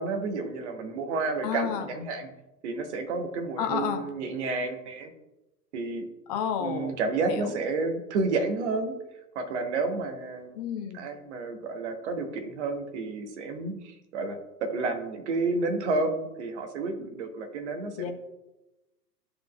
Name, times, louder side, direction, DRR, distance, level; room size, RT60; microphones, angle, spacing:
voice 1, 0.0-2.3 2.6-5.1 5.7-6.1 6.6-8.9 9.3-10.6 10.9-18.1, right 3 dB, 45° right, 6 dB, 1.0 m, -30 dB
voice 2, 1.4-1.9 3.6-4.0 6.3-7.0 7.3-7.5 10.5-11.0 18.0-18.1, left 8 dB, 25° left, 6 dB, 0.5 m, -30 dB
11.5 x 3.9 x 2.2 m, 0.99 s
figure-of-eight pair, 105°, 48 cm